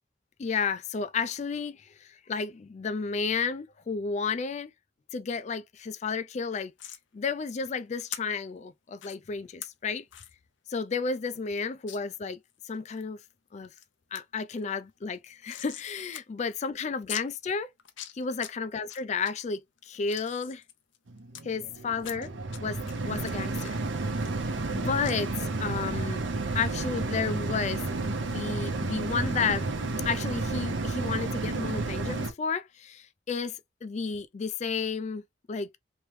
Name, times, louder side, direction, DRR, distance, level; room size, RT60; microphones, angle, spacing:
voice 1, 0.4-4.7 5.1-6.7 7.1-10.1 10.7-12.4 12.6-13.2 13.5-13.7 14.1-17.7 18.1-20.6 21.4-22.3 22.6-23.8 24.7-25.3 25.6-26.2 26.5-29.7 30.0-35.2 35.5-35.8, left 5 dB, 35° left, 0.4 m, -32 dB
sound 1, 6.8-7.0 8.1-8.2 9.0-9.2 9.6-9.7 10.1-10.3 10.7-10.8 11.1-11.2 11.9-12.0 12.5-13.0 13.5-13.8 14.1-14.2 14.5-15.9 16.1-16.2 16.5-16.6 17.1-17.2 17.8-18.5 18.9-19.3 19.8-21.4 22.0-22.6 22.9-24.7 25.0-25.2, left 11 dB, 80° left, 0.6 m, -42 dB
sound 2, 21.1-32.3, right 3 dB, 75° right, 0.8 m, -31 dB
3.1 x 3.0 x 3.1 m
head